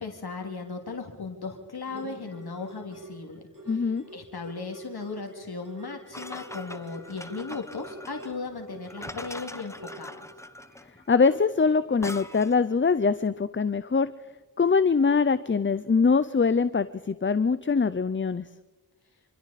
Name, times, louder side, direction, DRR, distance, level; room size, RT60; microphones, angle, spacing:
voice 1, 0.0-3.4 3.7-10.3, left 4 dB, 85° left, 3 dB, 2.6 m, -37 dB
sound 1, 1.8-9.4 9.8-12.5 13.0-13.1, right 2 dB, 55° right, 4.7 m, -47 dB
voice 2, 3.7-4.0 11.1-14.1 14.6-18.5, left 5 dB, 30° left, 14 dB, 0.6 m, -23 dB
sound 2, 6.1-12.7, left 1 dB, 5° left, 1.0 m, -42 dB
27.5 x 26.5 x 4.2 m, 1.2 s
wide cardioid pair, 60°, 37 cm